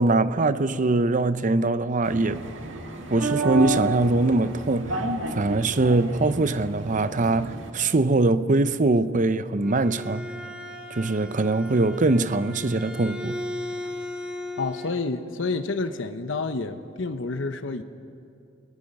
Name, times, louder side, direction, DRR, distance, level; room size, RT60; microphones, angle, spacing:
voice 1, 0.0-2.5 3.1-5.1 5.3-10.3 10.9-13.4, right 2 dB, 40° right, 0.7 m, -22 dB
sound 1, 2.0-7.7, right 2 dB, 75° right, 1.8 m, -31 dB
Bowed string instrument, 9.5-15.0, left 1 dB, 5° right, 2.0 m, -36 dB
voice 2, 14.6-17.8, left 3 dB, 75° left, 1.0 m, -29 dB
30.0 x 19.5 x 5.4 m
head